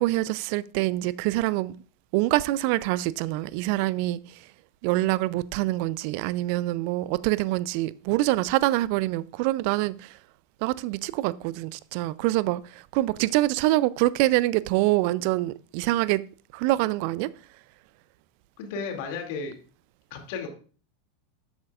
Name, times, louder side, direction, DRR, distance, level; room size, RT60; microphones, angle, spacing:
voice 1, 0.0-1.7 2.1-4.4 4.8-10.2 10.6-16.2 16.5-17.3, right 17 dB, 55° right, 0.4 m, -25 dB
voice 2, 18.6-19.5 20.1-20.5, left 5 dB, 55° left, 2.4 m, -33 dB
12.5 x 8.7 x 2.4 m
figure-of-eight pair, 85°, 0 cm